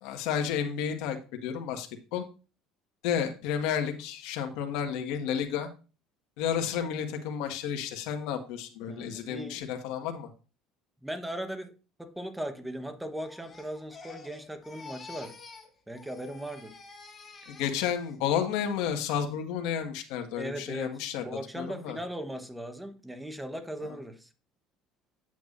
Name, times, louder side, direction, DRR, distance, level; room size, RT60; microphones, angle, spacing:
voice 1, 0.0-2.2 3.0-5.7 6.4-10.3 17.5-21.2 21.5-22.0 23.8-24.0, left 8 dB, 75° left, 1.6 m, -31 dB
voice 2, 8.9-9.6 11.0-11.7 12.0-15.4 15.9-16.8 20.4-24.3, right 1 dB, 5° right, 1.1 m, -38 dB
Crying sobbing, 13.2-15.7 15.9-18.1 18.5-18.9, left 4 dB, 20° left, 2.4 m, -49 dB
9.2 x 8.2 x 2.6 m
cardioid pair, 120°, 0 cm